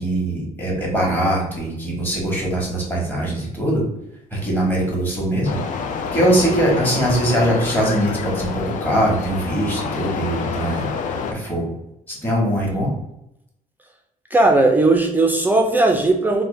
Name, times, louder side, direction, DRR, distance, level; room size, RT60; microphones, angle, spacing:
voice 1, 0.0-3.8 4.3-5.6 6.1-10.9 11.3-11.7 12.1-12.9, right 1 dB, 15° left, -3 dB, 1.2 m, -21 dB
sound 1, 5.4-11.3, left 5 dB, 65° left, 0.4 m, -27 dB
voice 2, 14.3-16.4, right 2 dB, 15° right, 2 dB, 0.4 m, -17 dB
3.8 x 2.1 x 3.2 m, 0.82 s
cardioid pair, 130°, 14 cm